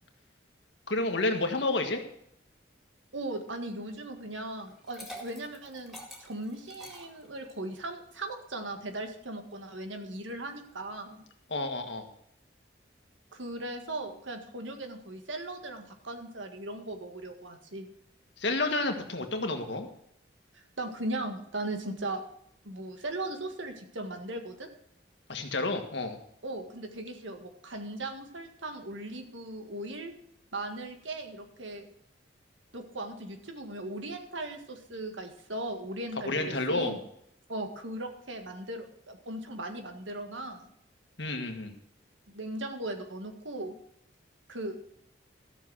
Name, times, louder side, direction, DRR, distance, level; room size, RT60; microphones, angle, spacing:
voice 1, 0.9-2.0 11.5-12.1 18.4-19.9 25.3-26.2 36.2-37.0 41.2-41.7, left 2 dB, 70° left, 5 dB, 1.7 m, -30 dB
voice 2, 3.1-11.2 13.3-17.9 20.5-22.2 22.6-24.7 26.4-30.1 30.5-31.9 32.7-37.0 37.5-40.7 42.3-43.8 44.5-44.8, right 1 dB, 85° right, 5 dB, 1.8 m, -38 dB
Liquid, 4.7-7.7, equal, ahead, 2.1 m, -46 dB
13.5 x 6.8 x 6.3 m, 0.72 s
head